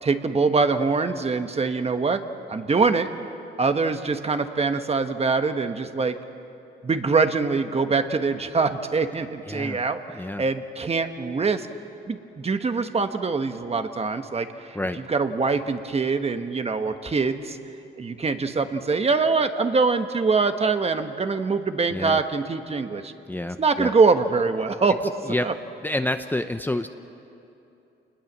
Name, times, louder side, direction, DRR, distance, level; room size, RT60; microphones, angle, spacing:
voice 1, 0.0-2.2 2.5-3.1 3.6-6.1 6.8-11.7 12.1-14.8 15.1-17.6 18.0-23.1 23.6-25.1 25.4-25.5, right 4 dB, 30° right, 8 dB, 1.4 m, -24 dB
voice 2, 9.4-9.8 10.1-10.4 14.7-15.0 21.9-22.2 23.3-23.9 25.3-25.5 25.8-26.9, left 1 dB, 10° left, 8 dB, 0.8 m, -28 dB
27.5 x 20.5 x 7.5 m, 2.8 s
cardioid pair, 90°, 20 cm